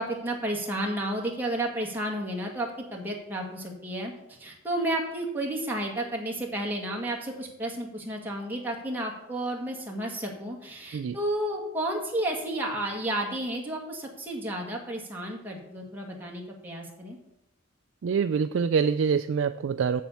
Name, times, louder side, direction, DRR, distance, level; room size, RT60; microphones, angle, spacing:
voice 1, 0.0-17.2, right 1 dB, 10° right, -1 dB, 1.8 m, -32 dB
voice 2, 18.0-20.0, right 6 dB, 65° right, 9 dB, 0.3 m, -25 dB
7.4 x 7.3 x 7.0 m, 0.86 s
head